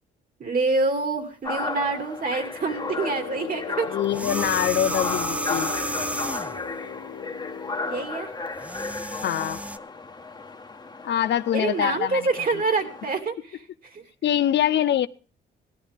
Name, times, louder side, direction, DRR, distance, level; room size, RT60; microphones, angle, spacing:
voice 1, 0.4-4.0 7.8-8.3 11.5-14.0, right 3 dB, 45° right, 6 dB, 2.7 m, -26 dB
sound 1, 1.4-13.2, left 3 dB, 20° left, 1.5 m, -34 dB
Brass instrument, 2.6-8.2, left 8 dB, 80° left, 1.4 m, -39 dB
voice 2, 3.9-5.7 9.0-9.6 11.0-12.3 14.2-15.1, left 10 dB, 60° left, 14 dB, 0.7 m, -24 dB
sound 2, 4.0-6.6 8.5-9.8, right 1 dB, 5° right, 0.7 m, -31 dB
17.0 x 12.0 x 3.6 m, 0.36 s
cardioid pair, 90°, 20 cm